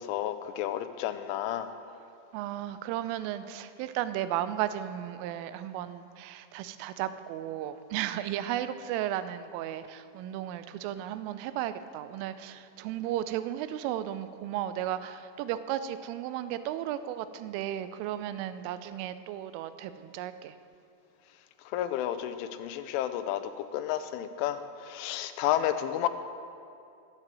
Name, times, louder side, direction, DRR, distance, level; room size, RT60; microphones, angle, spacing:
voice 1, 0.0-1.7 21.7-26.1, left 11 dB, 85° left, 10 dB, 3.1 m, -31 dB
voice 2, 2.3-20.5, right 12 dB, 85° right, 12 dB, 3.2 m, -34 dB
20.5 x 7.6 x 7.6 m, 2.5 s
omnidirectional pair, 5.7 m